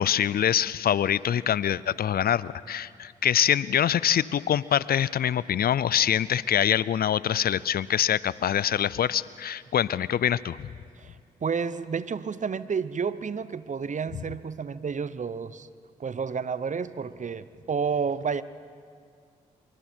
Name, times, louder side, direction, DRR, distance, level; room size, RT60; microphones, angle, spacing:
voice 1, 0.0-10.7, left 10 dB, 60° left, 20 dB, 0.5 m, -24 dB
voice 2, 11.0-15.7 16.0-18.4, right 6 dB, 45° right, 16 dB, 0.8 m, -30 dB
25.5 x 23.5 x 4.5 m, 2.2 s
hypercardioid pair, 40°, 18 cm